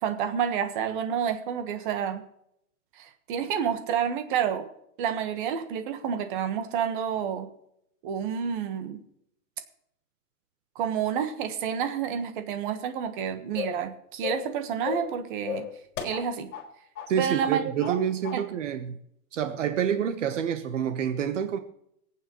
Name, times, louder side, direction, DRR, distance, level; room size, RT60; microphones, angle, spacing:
voice 1, 0.0-2.2 3.0-4.7 5.0-7.5 8.0-9.0 10.7-15.6 16.0-16.5 17.2-18.0 18.3-18.4, right 8 dB, 35° right, 1.4 m, -29 dB
sound 1, 13.6-13.9 14.2-14.5 14.8-15.2 15.5-16.7 16.9-17.1 17.4-18.0 18.2-18.4, left 9 dB, 50° left, 4.4 m, -35 dB
voice 2, 17.1-19.0 19.3-21.6, right 8 dB, 50° right, 1.2 m, -28 dB
25.5 x 9.0 x 3.1 m
hypercardioid pair, 165°, 46 cm